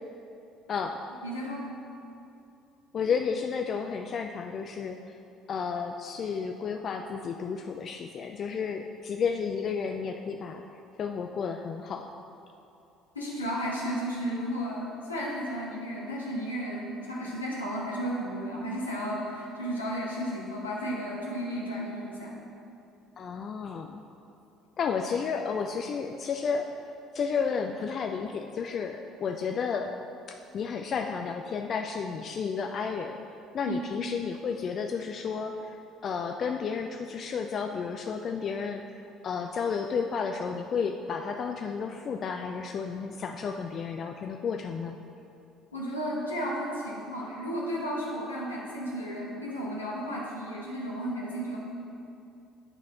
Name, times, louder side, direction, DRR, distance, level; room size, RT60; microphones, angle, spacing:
voice 1, 1.2-1.7 13.1-22.4 33.6-33.8 45.7-51.6, equal, 80° left, -4 dB, 1.0 m, -33 dB
voice 2, 2.9-5.2 5.5-10.6 11.0-12.1 23.2-24.0 24.8-26.7 27.1-29.9 30.5-33.2 33.5-45.0, left 6 dB, 40° left, 4 dB, 0.3 m, -32 dB
8.8 x 4.1 x 4.2 m, 2.6 s
figure-of-eight pair, 55°, 0 cm